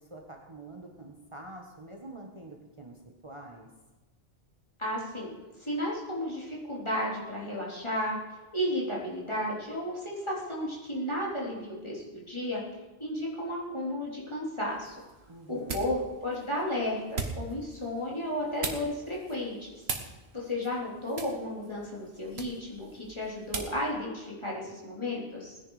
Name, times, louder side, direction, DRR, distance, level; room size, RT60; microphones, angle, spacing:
voice 1, 0.0-3.7 15.3-15.9, right 2 dB, 30° right, 1 dB, 1.4 m, -46 dB
voice 2, 4.8-5.3 5.6-8.2 8.5-12.6 13.0-14.9 15.5-19.7 20.3-25.5, left 1 dB, 30° left, -5 dB, 3.6 m, -33 dB
sound 1, 14.7-23.9, right 4 dB, 90° right, 1.7 m, -41 dB
18.5 x 10.5 x 5.0 m, 1.1 s
omnidirectional pair, 1.0 m